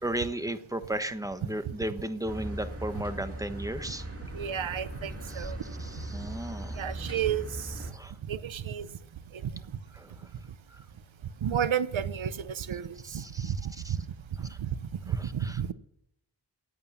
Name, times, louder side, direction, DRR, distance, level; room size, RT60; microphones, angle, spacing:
voice 1, 0.0-4.1 5.3-5.5 6.1-6.8 7.9-8.1 10.0-10.3 10.7-10.8 13.0-13.5 13.8-14.0 14.5-14.6 15.2-15.7, right 1 dB, 5° right, 1.2 m, -35 dB
sound 1, 2.2-7.9, right 1 dB, 30° right, 2.4 m, -39 dB
voice 2, 4.3-5.6 6.8-7.7 8.3-8.9 9.4-9.5 11.4-13.6 13.9-14.0 14.4-14.7 15.3-15.7, right 8 dB, 90° right, 0.9 m, -31 dB
14.5 x 8.9 x 7.3 m
wide cardioid pair, 75°, 45 cm